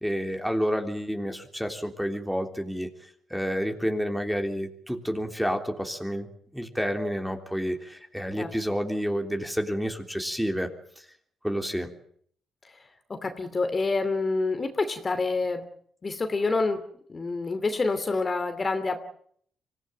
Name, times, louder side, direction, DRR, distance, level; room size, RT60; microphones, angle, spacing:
voice 1, 0.0-2.9 3.3-6.3 6.5-10.7 11.0-11.1 11.4-11.9, equal, ahead, 5 dB, 3.4 m, -29 dB
voice 2, 13.1-15.6 16.0-19.0, left 3 dB, 30° left, 8 dB, 2.7 m, -27 dB
25.0 x 16.5 x 9.0 m, 0.62 s
cardioid pair, 90°, 0 cm